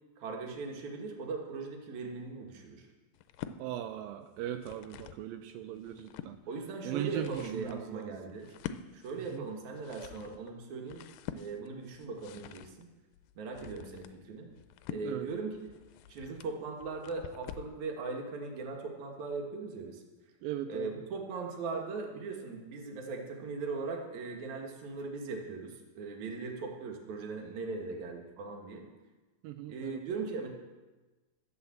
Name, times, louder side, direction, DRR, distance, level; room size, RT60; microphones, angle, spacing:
voice 1, 0.2-2.9 6.5-8.5 8.9-11.0 11.3-12.8 13.4-14.5 14.9-15.6 16.1-20.0 20.7-28.9 29.7-30.5, right 4 dB, 60° right, 2 dB, 2.7 m, -39 dB
sound 1, 3.1-3.6 4.4-5.3 5.7-6.4 6.9-17.8, left 10 dB, 80° left, 2.2 m, -47 dB
voice 2, 3.6-6.4 6.8-8.2 9.3-9.5 15.0-15.3 20.4-20.9 29.4-30.2, right 11 dB, 85° right, 7 dB, 2.4 m, -39 dB
12.0 x 8.0 x 7.4 m, 1.2 s
omnidirectional pair, 4.1 m